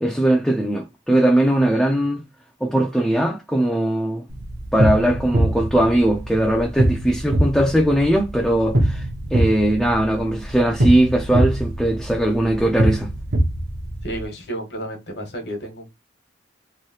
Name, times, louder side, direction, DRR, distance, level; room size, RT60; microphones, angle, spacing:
voice 1, 0.0-2.2 2.6-4.3 4.7-9.1 9.3-13.1, right 1 dB, 5° left, 0.4 m, -19 dB
sound 1, 4.3-14.2, right 1 dB, 65° right, 0.9 m, -23 dB
voice 2, 14.0-15.9, right 1 dB, 60° left, 1.2 m, -31 dB
3.1 x 2.7 x 2.8 m
head